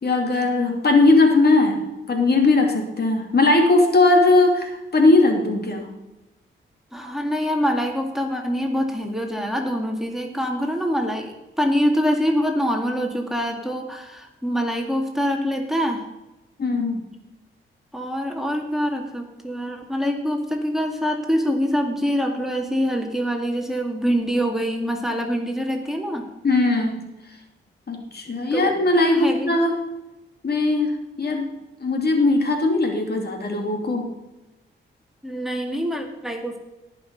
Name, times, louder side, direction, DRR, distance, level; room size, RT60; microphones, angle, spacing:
voice 1, 0.0-5.9 16.6-17.1 26.4-27.0 27.9-29.7 30.4-31.5 31.8-34.1, left 2 dB, 50° left, 2 dB, 2.6 m, -19 dB
voice 2, 6.9-16.0 17.9-26.3 28.5-28.7 29.1-29.6 35.2-36.6, equal, ahead, 2 dB, 2.2 m, -25 dB
18.0 x 6.1 x 5.3 m, 1.0 s
cardioid pair, 60°, 21 cm